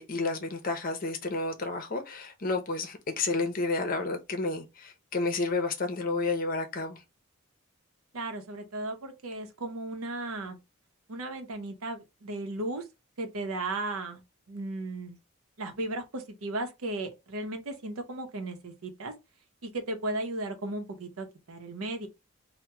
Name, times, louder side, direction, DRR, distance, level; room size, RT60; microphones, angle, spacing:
voice 1, 0.0-7.0, left 3 dB, 40° left, 0.6 m, -31 dB
voice 2, 8.1-10.6 11.1-12.8 13.2-14.2 14.5-15.2 15.6-19.1 19.6-22.1, right 2 dB, 85° right, 0.7 m, -35 dB
2.9 x 2.2 x 3.3 m
head